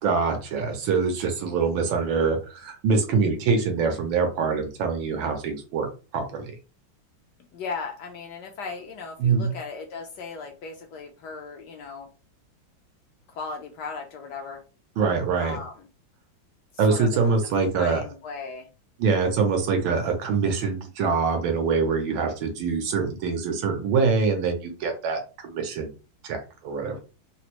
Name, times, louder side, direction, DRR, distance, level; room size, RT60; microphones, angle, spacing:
voice 1, 0.0-6.5 9.2-9.5 15.0-15.6 16.8-18.0 19.0-25.9 26.2-27.0, right 5 dB, 80° right, 5 dB, 1.5 m, -24 dB
voice 2, 7.4-12.1 13.3-14.6 15.4-15.9 16.7-17.3 17.8-18.7, left 4 dB, 75° left, 3 dB, 1.1 m, -37 dB
3.9 x 2.0 x 2.9 m, 0.33 s
omnidirectional pair, 2.1 m